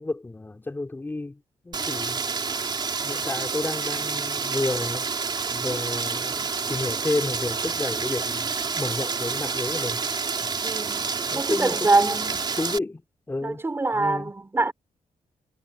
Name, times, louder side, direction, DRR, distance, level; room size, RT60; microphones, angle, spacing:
voice 1, 0.0-1.4 1.6-2.2 3.0-5.1 5.5-10.0 10.4-10.6 11.3-13.0 13.3-13.6 13.9-14.3, left 2 dB, 15° left, 4.0 m, -31 dB
Rain, 1.7-12.8, right 5 dB, 35° right, 3.9 m, -28 dB
voice 2, 10.6-12.3 13.4-14.7, right 3 dB, 15° right, 5.0 m, -24 dB
wide cardioid pair, 160°, 14 cm